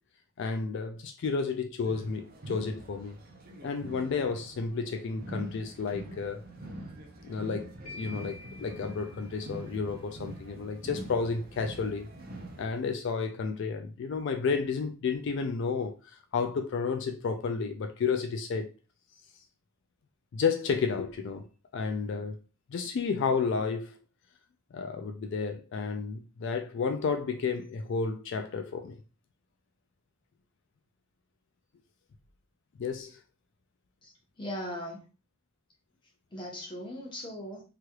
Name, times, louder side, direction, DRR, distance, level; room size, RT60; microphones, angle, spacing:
voice 1, 0.4-3.2 3.6-6.4 7.2-12.1 12.6-18.7 20.3-21.5 21.7-22.4 22.7-24.0 24.7-29.0 32.8-33.2, left 5 dB, 55° left, 0.3 m, -31 dB
sound 1, 1.8-12.7, right 1 dB, 45° right, 0.5 m, -44 dB
sound 2, 7.9-10.0, left 2 dB, 75° left, 1.1 m, -49 dB
voice 2, 34.0-35.0 36.3-37.6, equal, 20° left, 1.0 m, -39 dB
3.1 x 2.9 x 2.3 m
head